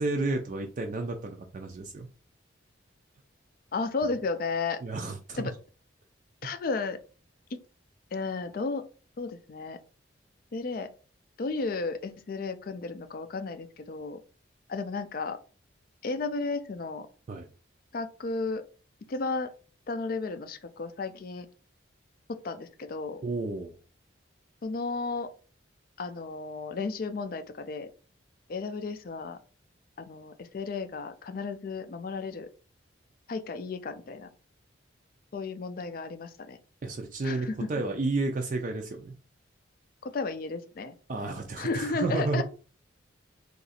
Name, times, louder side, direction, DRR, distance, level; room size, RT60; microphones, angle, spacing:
voice 1, 0.0-2.1 4.8-5.5 17.3-17.5 23.2-23.7 36.8-39.1 41.1-42.4, right 3 dB, 40° right, 3 dB, 0.3 m, -31 dB
voice 2, 3.7-4.8 5.4-5.5 6.4-7.0 8.1-8.8 9.2-9.8 10.5-10.9 11.4-14.2 14.7-15.4 16.0-17.1 17.9-18.6 19.1-19.5 19.9-21.5 22.3-23.2 24.6-25.3 26.0-27.9 28.5-29.4 30.0-32.5 33.3-34.3 35.3-36.6 37.2-37.7 40.0-40.9 41.6-42.4, left 3 dB, 45° left, 10 dB, 0.4 m, -33 dB
2.9 x 2.5 x 4.1 m, 0.37 s
head